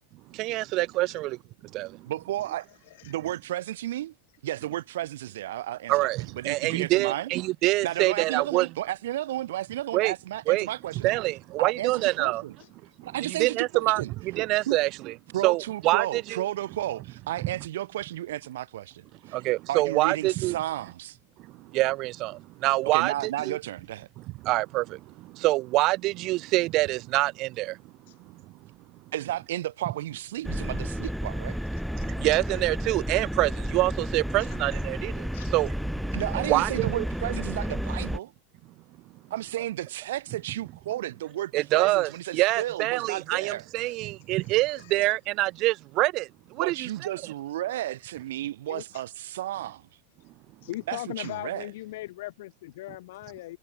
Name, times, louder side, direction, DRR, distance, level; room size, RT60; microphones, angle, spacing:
voice 1, 0.4-1.4 1.7-1.9 5.9-8.7 9.9-10.1 10.5-10.7 11.0-12.4 13.2-15.1 15.4-16.4 19.3-20.6 21.7-23.6 24.4-25.0 25.4-27.7 32.2-35.3 35.5-35.7 36.4-37.1 41.5-46.3 46.6-46.9, right 19 dB, 40° right, 0.6 m, -25 dB
voice 2, 2.0-2.7 3.0-4.1 4.4-7.3 7.8-11.2 11.6-12.5 13.0-14.1 14.7-14.8 15.3-19.4 19.7-21.2 22.9-24.1 29.1-31.6 36.1-38.3 39.3-43.6 46.6-49.9 50.9-51.7, right 13 dB, 85° right, 1.5 m, -33 dB
sound 1, 30.4-38.2, equal, ahead, 1.7 m, -32 dB
voice 3, 43.8-45.2 48.7-49.0 50.2-50.3 50.6-53.6, left 17 dB, 70° left, 5.2 m, -40 dB
supercardioid pair, 155°, 0 cm